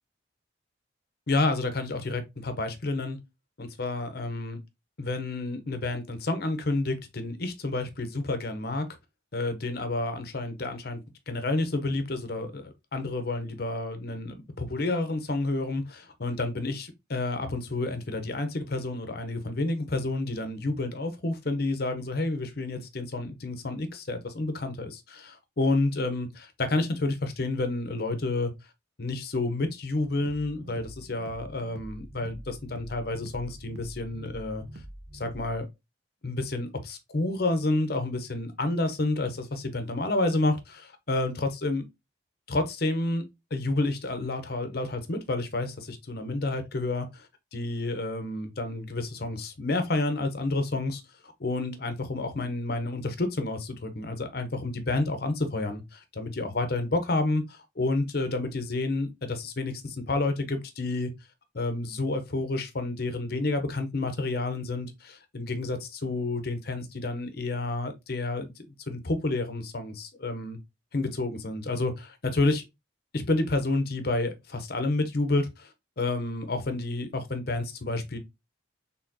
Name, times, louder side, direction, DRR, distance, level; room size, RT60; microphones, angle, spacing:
voice 1, 1.3-3.2 3.6-4.6 5.0-8.9 9.3-11.0 11.3-28.5 29.0-34.6 35.1-35.7 36.2-41.8 42.5-43.2 43.5-47.3 47.5-51.0 51.4-61.1 61.5-70.6 70.9-72.6 73.1-75.7 76.0-78.2, left 2 dB, 50° left, 0.8 m, -30 dB
sound 1, 30.0-35.6, right 1 dB, 55° right, 0.7 m, -45 dB
4.3 x 3.6 x 2.8 m
head